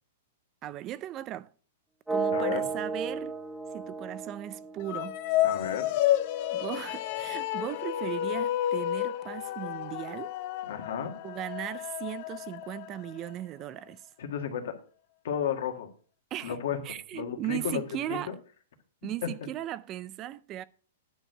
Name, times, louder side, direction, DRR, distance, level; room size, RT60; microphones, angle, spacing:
voice 1, 0.6-1.5 2.1-3.4 3.7-5.4 6.5-10.3 11.2-14.0 16.3-16.6 16.8-18.3 19.0-20.6, right 13 dB, 25° right, 0.3 m, -37 dB
sound 1, 2.1-6.0, right 4 dB, 5° right, 0.9 m, -34 dB
voice 2, 2.3-2.6 5.4-5.9 10.6-11.1 14.2-14.7 15.2-15.9 16.4-16.8 17.1-17.8 18.1-18.3, left 8 dB, 70° left, 1.7 m, -32 dB
sound 2, 4.8-13.3, left 13 dB, 45° left, 0.6 m, -31 dB
9.9 x 4.6 x 6.5 m
hypercardioid pair, 155°, 0 cm